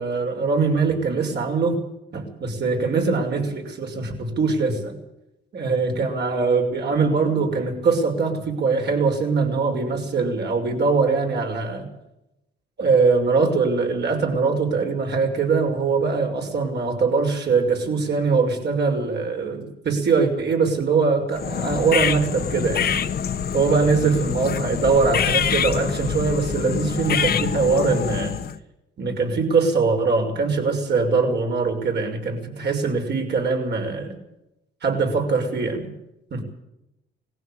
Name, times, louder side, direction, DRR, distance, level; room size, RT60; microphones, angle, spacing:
voice 1, 0.0-1.8 2.1-5.0 5.5-11.8 12.8-22.9 23.5-28.3 29.0-34.1 34.8-35.9 36.3-36.4, right 4 dB, 60° right, 3 dB, 5.9 m, -22 dB
sound 1, 21.3-28.6, left 8 dB, 50° left, 1.3 m, -25 dB
20.0 x 15.5 x 8.8 m, 0.89 s
cardioid pair, 90°, 20 cm